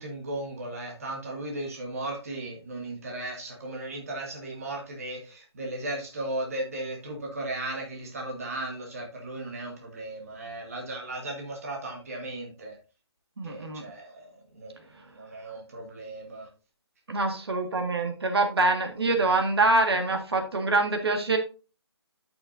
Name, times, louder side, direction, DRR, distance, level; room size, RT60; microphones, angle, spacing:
voice 1, 0.0-12.8 13.4-14.9 15.1-16.5, right 1 dB, 35° right, 0 dB, 1.6 m, -36 dB
voice 2, 13.4-13.8 17.1-21.4, right 2 dB, 65° right, 4 dB, 1.8 m, -25 dB
11.5 x 5.9 x 2.6 m, 0.33 s
hypercardioid pair, 180°, 14 cm